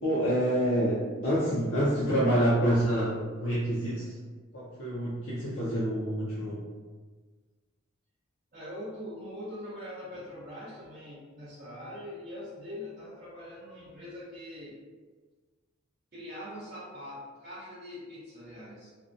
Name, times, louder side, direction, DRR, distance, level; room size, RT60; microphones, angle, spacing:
voice 1, 0.0-4.2 4.5-6.6, equal, 65° left, -8 dB, 0.5 m, -27 dB
voice 2, 8.5-14.7 16.1-18.9, left 1 dB, 45° right, -11 dB, 0.6 m, -42 dB
2.5 x 2.2 x 2.5 m, 1.4 s
head